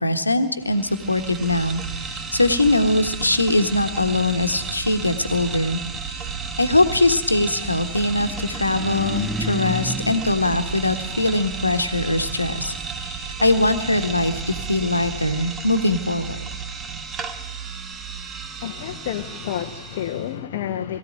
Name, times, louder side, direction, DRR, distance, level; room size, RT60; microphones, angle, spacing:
voice 1, 0.0-6.3 6.6-16.4, left 2 dB, 85° left, 8 dB, 1.4 m, -22 dB
sound 1, 0.6-20.3, right 5 dB, 25° right, 1.7 m, -33 dB
sound 2, 7.8-11.4, left 1 dB, 5° left, 5.9 m, -32 dB
voice 2, 18.6-21.0, left 10 dB, 55° left, 5 dB, 1.0 m, -29 dB
22.0 x 14.5 x 9.1 m, 1.0 s
figure-of-eight pair, 90°, 0 cm